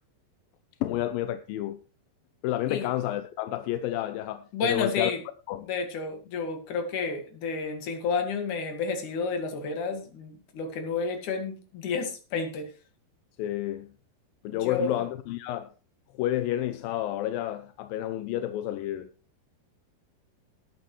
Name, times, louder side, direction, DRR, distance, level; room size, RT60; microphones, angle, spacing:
voice 1, 0.8-1.8 2.4-5.1 5.5-5.7 13.4-13.9 14.4-15.7 16.2-19.1, left 13 dB, 80° left, 2.2 m, -30 dB
voice 2, 4.5-5.2 5.7-12.7 14.4-15.0, left 4 dB, 55° left, 3.2 m, -31 dB
19.5 x 8.7 x 3.2 m
omnidirectional pair, 4.6 m